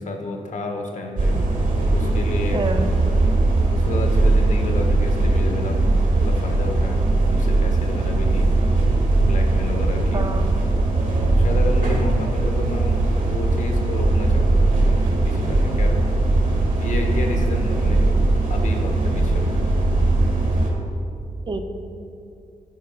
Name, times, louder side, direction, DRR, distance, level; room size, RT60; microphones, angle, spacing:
voice 1, 0.0-1.4 1.9-2.7 3.7-8.5 9.3-10.3 11.3-16.2 16.8-18.1 18.5-19.6, left 2 dB, 60° left, 3 dB, 1.5 m, -31 dB
sound 1, 1.2-20.7, right 2 dB, 65° right, 2.2 m, -19 dB
voice 2, 2.5-2.9 10.1-10.6 12.2-12.4 21.5-21.6, right 3 dB, 35° right, 6 dB, 0.9 m, -28 dB
13.0 x 5.1 x 5.7 m, 2.5 s
cardioid pair, 80°, 14 cm